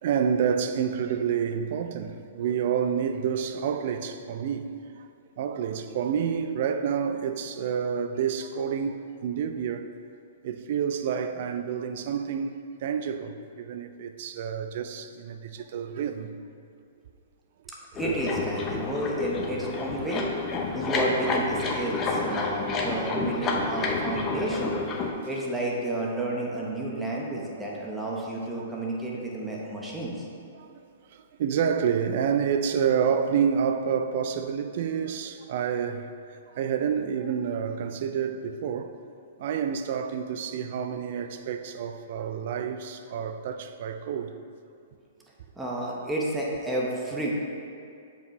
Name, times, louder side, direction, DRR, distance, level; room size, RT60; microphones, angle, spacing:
voice 1, 0.0-4.7 5.0-5.1 5.4-9.9 10.4-16.3 18.7-18.8 20.6-20.7 25.3-25.4 27.2-27.8 28.7-28.8 30.5-39.0 39.4-44.3, right 7 dB, 55° right, 0.4 m, -29 dB
voice 2, 17.9-20.2 20.7-24.8 25.2-30.2 45.6-47.3, right 2 dB, 10° right, 1.1 m, -31 dB
sound 1, 18.0-25.1, left 3 dB, 25° left, 0.7 m, -29 dB
7.0 x 5.1 x 3.3 m
hypercardioid pair, 115°, 0 cm